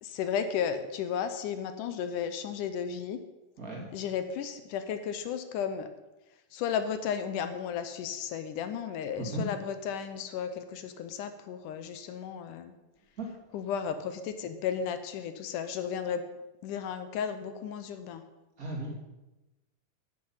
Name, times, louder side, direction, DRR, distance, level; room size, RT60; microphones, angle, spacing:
voice 1, 0.0-3.2 3.9-5.9 6.5-12.7 13.5-16.3 16.6-18.2, left 7 dB, 75° left, 10 dB, 2.0 m, -34 dB
voice 2, 9.2-9.5 13.2-13.3 18.6-19.0, right 2 dB, 25° right, -1 dB, 2.6 m, -35 dB
11.5 x 10.0 x 5.6 m, 1.0 s
omnidirectional pair, 4.2 m